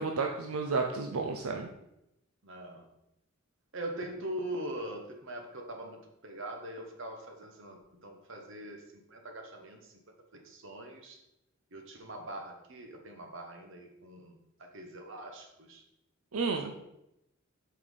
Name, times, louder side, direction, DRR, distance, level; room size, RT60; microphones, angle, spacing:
voice 1, 0.0-1.7 16.3-16.7, right 4 dB, 85° right, 3 dB, 0.7 m, -31 dB
voice 2, 2.4-2.9 3.7-9.8 10.3-11.2 11.7-15.8 16.6-16.8, right 1 dB, 60° right, 3 dB, 1.4 m, -42 dB
8.0 x 5.8 x 4.1 m, 0.84 s
head